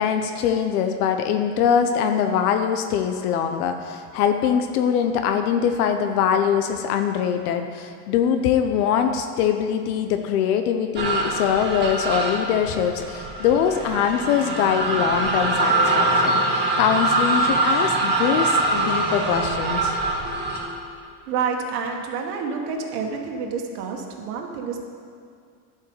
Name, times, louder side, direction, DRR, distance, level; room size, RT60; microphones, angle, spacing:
voice 1, 0.0-20.0, left 8 dB, 85° left, 6 dB, 0.8 m, -23 dB
sound 1, 11.0-20.6, right 2 dB, 25° right, 2.0 m, -23 dB
voice 2, 21.3-24.8, right 5 dB, 80° right, 2 dB, 1.5 m, -28 dB
11.5 x 5.5 x 7.0 m, 2.2 s
supercardioid pair, 130°, 44 cm